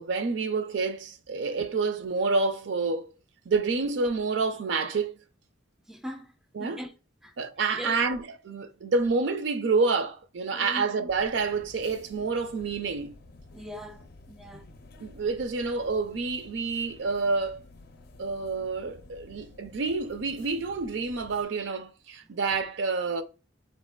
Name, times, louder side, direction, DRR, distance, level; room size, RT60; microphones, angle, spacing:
voice 1, 0.0-3.1 3.5-5.2 6.5-6.8 7.4-13.1 15.0-17.6 18.2-23.2, right 4 dB, 75° right, 0.4 m, -28 dB
voice 2, 5.9-6.3 6.6-6.9 7.2-7.3 7.7-8.0 10.5-10.9 13.5-14.6, equal, 5° right, 0.3 m, -40 dB
sound 1, 11.1-21.4, left 2 dB, 55° left, 0.5 m, -52 dB
4.0 x 2.8 x 2.2 m
head